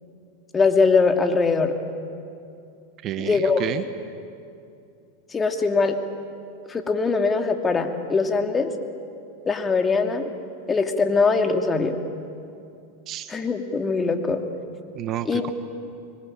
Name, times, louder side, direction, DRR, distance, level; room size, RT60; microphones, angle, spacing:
voice 1, 0.5-1.7 3.2-3.6 5.3-6.0 6.7-8.7 9.5-10.2 10.7-12.0 13.3-14.4 15.3-15.5, left 4 dB, 20° left, 5 dB, 2.6 m, -21 dB
voice 2, 3.0-3.8 13.1-13.3 14.9-15.5, right 12 dB, 40° right, 10 dB, 1.4 m, -30 dB
25.5 x 23.0 x 8.9 m, 2.6 s
hypercardioid pair, 95°, 0 cm